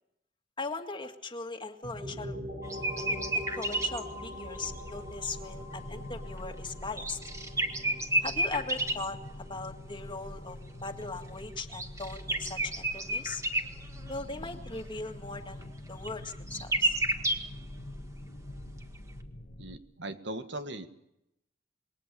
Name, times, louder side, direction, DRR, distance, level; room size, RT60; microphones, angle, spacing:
voice 1, 0.6-2.3 3.0-7.2 8.2-13.4 14.1-17.0, left 3 dB, 25° left, 5 dB, 2.0 m, -39 dB
sound 1, 1.8-11.4, left 1 dB, 45° right, 7.6 m, -44 dB
sound 2, 2.6-4.0 4.9-5.0 6.8-9.1 11.6-13.7 14.0-14.1 15.6-15.7 16.0-17.4, right 1 dB, 15° right, 1.9 m, -30 dB
sound 3, 4.5-19.8, left 1 dB, 55° left, 2.0 m, -45 dB
voice 2, 19.6-20.9, right 1 dB, 80° right, 9 dB, 1.9 m, -39 dB
27.5 x 21.5 x 7.0 m, 0.84 s
head